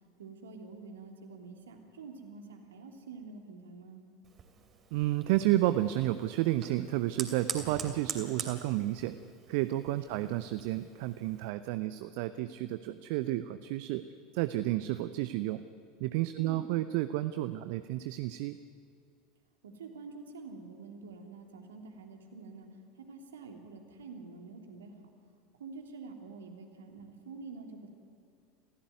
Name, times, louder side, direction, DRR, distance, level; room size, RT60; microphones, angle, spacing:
voice 1, 0.2-4.0 10.2-10.3 16.4-16.6 19.6-22.7 23.1-24.9 25.6-27.9, right 4 dB, 70° right, 3 dB, 3.2 m, -47 dB
Fire, 4.2-11.5, right 7 dB, 30° right, 3.1 m, -44 dB
voice 2, 4.9-9.2 9.5-14.0 14.3-15.6 16.0-18.6, right 15 dB, 55° right, 13 dB, 0.7 m, -31 dB
27.5 x 16.0 x 9.6 m, 2.4 s
figure-of-eight pair, 80°, 0 cm